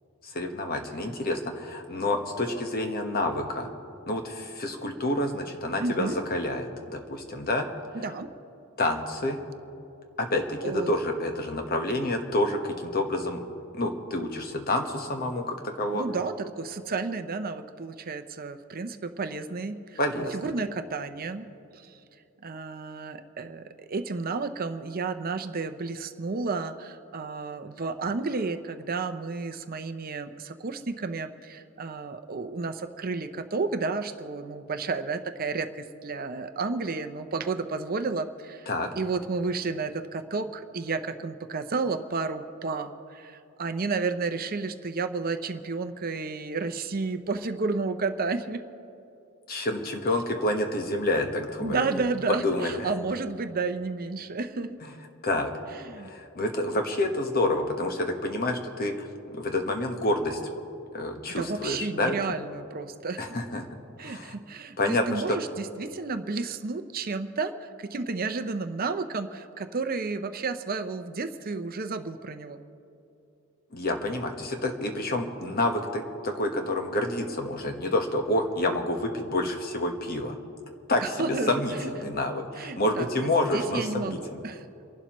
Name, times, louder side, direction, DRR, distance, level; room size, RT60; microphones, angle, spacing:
voice 1, 0.2-3.7 4.1-7.7 8.8-9.4 10.2-13.4 13.7-16.0 20.0-20.3 38.7-38.9 49.5-51.9 52.4-52.9 55.2-55.5 56.0-59.1 59.3-60.4 60.9-62.1 63.2-63.7 64.0-64.3 64.8-65.4 73.7-80.4 80.9-84.4, left 1 dB, 45° left, 4 dB, 1.3 m, -28 dB
voice 2, 5.8-6.2 7.9-8.3 10.6-11.0 15.9-21.5 21.7-22.0 22.4-38.7 39.0-48.6 51.6-54.8 55.7-56.1 61.3-63.4 64.0-72.6 81.0-81.9 82.6-83.1 83.5-84.6, right 4 dB, 40° right, 8 dB, 0.6 m, -32 dB
30.0 x 11.5 x 3.1 m, 2.7 s
head